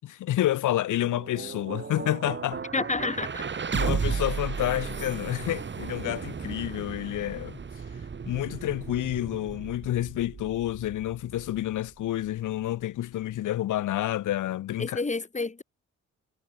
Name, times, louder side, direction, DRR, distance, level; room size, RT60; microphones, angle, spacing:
voice 1, 0.0-2.6 3.7-7.6 8.3-15.0, left 13 dB, 80° left, 6.8 m, -29 dB
sound 1, 0.8-12.8, right 5 dB, 40° right, 4.3 m, -35 dB
voice 2, 2.7-3.5 14.8-15.6, left 3 dB, 25° left, 7.6 m, -29 dB
cardioid pair, 90°, 30 cm